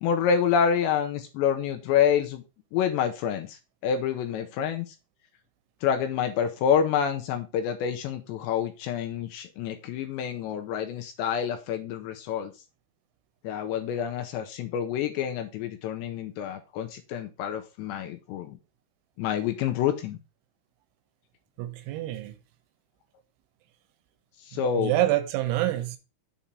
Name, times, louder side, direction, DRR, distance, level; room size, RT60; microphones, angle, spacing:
voice 1, 0.0-2.4 2.7-4.9 5.8-12.5 13.4-18.6 19.2-20.2 24.4-24.9, left 8 dB, 80° left, 2.8 m, -27 dB
voice 2, 21.6-22.4 24.8-26.0, right 14 dB, 80° right, 3.1 m, -26 dB
7.4 x 4.2 x 5.1 m
omnidirectional pair, 5.5 m